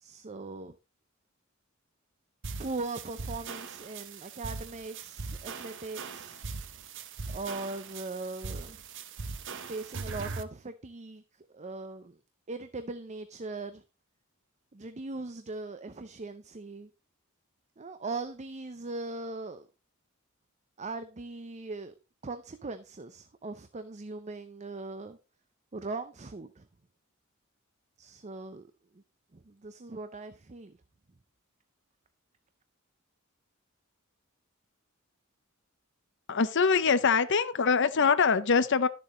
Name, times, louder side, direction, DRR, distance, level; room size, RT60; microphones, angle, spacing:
voice 1, 0.0-0.7 2.6-6.5 7.3-8.8 9.5-12.2 12.5-13.8 14.7-16.9 17.8-19.7 20.8-21.9 22.2-25.2 25.7-26.7 28.0-28.7 28.9-29.0 29.3-30.8, right 3 dB, 35° right, 0.7 m, -40 dB
sound 1, 2.4-10.4, right 4 dB, 60° right, 0.9 m, -40 dB
voice 2, 36.3-38.9, left 5 dB, 60° left, 0.8 m, -24 dB
12.0 x 7.0 x 3.9 m
head